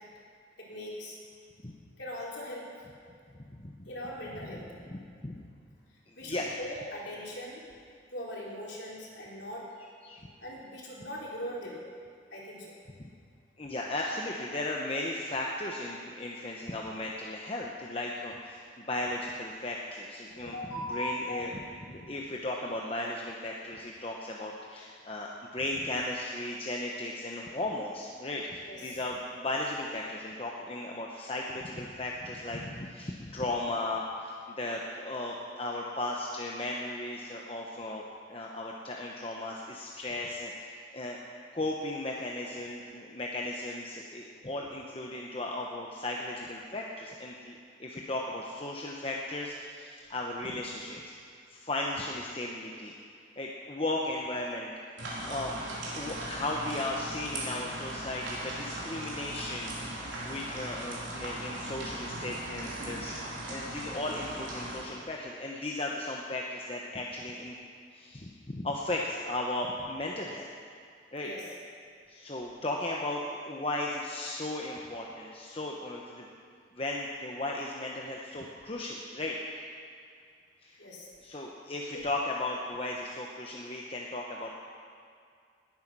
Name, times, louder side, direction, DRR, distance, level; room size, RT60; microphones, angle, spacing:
voice 1, 0.6-1.2 2.0-2.7 3.9-4.6 6.2-7.6 8.1-9.6 10.4-11.8 12.3-12.7 20.3-21.9 28.7-28.8 71.2-71.5 80.8-81.1 81.9-82.0, equal, 60° left, -4 dB, 3.9 m, -40 dB
voice 2, 3.3-3.9 4.5-4.6 4.9-5.4 6.2-6.5 10.0-10.3 13.0-13.1 13.6-38.0 38.3-41.2 41.5-47.5 47.8-51.0 51.5-52.9 53.4-54.7 55.2-55.5 55.8-59.7 60.2-63.2 63.5-67.6 67.9-70.5 71.1-71.3 72.1-76.3 76.7-79.4 79.6-79.7 80.6-80.8 81.2-84.5, left 2 dB, 30° left, -2 dB, 1.0 m, -36 dB
sound 1, 55.0-64.8, right 1 dB, 70° right, 3.9 m, -38 dB
19.5 x 9.6 x 6.2 m, 2.3 s
head